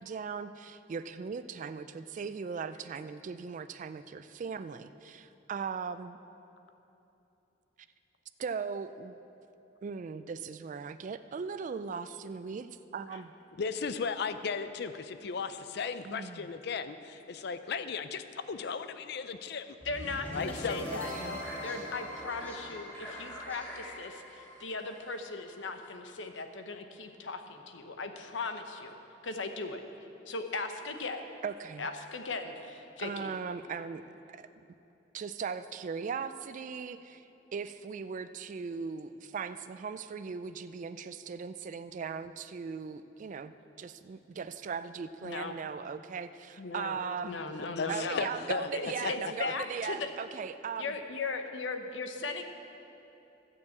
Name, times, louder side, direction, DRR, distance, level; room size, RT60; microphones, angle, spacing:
voice 1, 0.0-6.2 8.4-9.1 9.8-13.3 16.0-16.5 20.9-21.4 31.4-31.9 33.0-34.5 35.1-37.3 37.5-43.5 43.8-47.4 47.9-51.0, right 6 dB, 45° right, 11 dB, 0.3 m, -39 dB
voice 2, 13.6-19.8 20.3-20.8 47.6-48.7, left 5 dB, 60° left, 11 dB, 0.5 m, -36 dB
voice 3, 19.8-28.9 29.2-29.8 30.3-31.2 31.8-33.3 45.2-45.6 46.6-47.0 47.2-48.3 48.7-50.1 50.8-52.4, left 3 dB, 80° left, 6 dB, 0.9 m, -38 dB
sound 1, 19.8-25.9, left 1 dB, 10° left, 2.8 m, -42 dB
12.5 x 6.7 x 8.3 m, 3.0 s
head